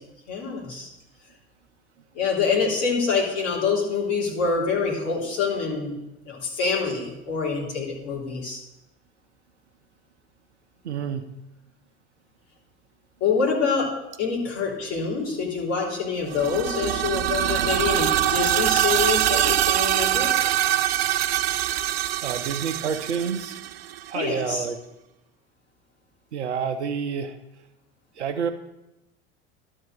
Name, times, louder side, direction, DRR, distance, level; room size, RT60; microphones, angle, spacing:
voice 1, 0.3-0.9 2.1-6.0 6.2-8.6 13.2-13.9 14.2-20.3 24.1-24.7, left 5 dB, 45° left, -3 dB, 3.4 m, -26 dB
voice 2, 10.8-11.3 22.2-23.6 24.1-24.8 26.3-27.4 28.2-28.5, right 6 dB, 80° right, 9 dB, 0.9 m, -28 dB
sound 1, 16.3-24.1, right 13 dB, 65° right, 0.5 m, -24 dB
12.0 x 4.5 x 6.4 m, 0.92 s
figure-of-eight pair, 75°, 34 cm